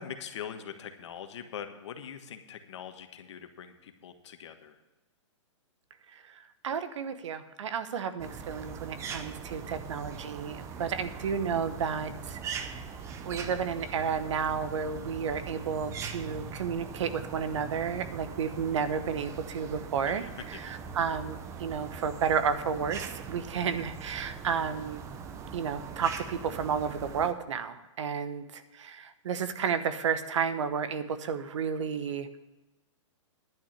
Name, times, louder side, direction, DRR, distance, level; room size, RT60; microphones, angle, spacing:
voice 1, 0.0-4.8 20.1-20.7, left 8 dB, 65° left, 8 dB, 1.3 m, -43 dB
voice 2, 6.1-12.8 13.2-25.1 25.5-32.3, right 6 dB, 70° right, 11 dB, 1.1 m, -32 dB
sound 1, 8.2-27.3, right 6 dB, 15° right, 0.7 m, -41 dB
11.0 x 6.3 x 8.6 m, 1.1 s
hypercardioid pair, 145°, 16 cm